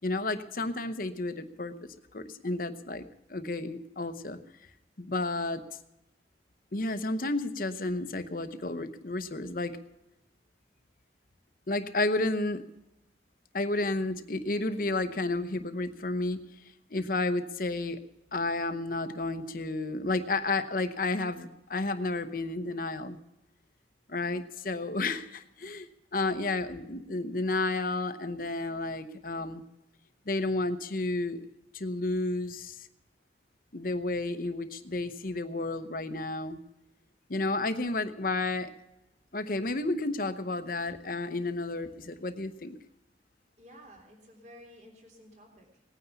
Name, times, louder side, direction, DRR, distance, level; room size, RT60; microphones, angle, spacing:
voice 1, 0.0-3.0 3.3-4.4 5.0-5.6 6.7-9.8 11.7-12.6 13.5-16.4 16.9-18.0 18.3-23.2 24.1-29.6 30.3-31.4 31.7-32.9 33.7-36.6 37.3-38.7 39.3-42.8, left 2 dB, 50° left, 10 dB, 0.9 m, -31 dB
voice 2, 43.6-45.8, equal, 40° right, 2 dB, 3.3 m, -53 dB
19.0 x 9.6 x 7.0 m, 0.89 s
head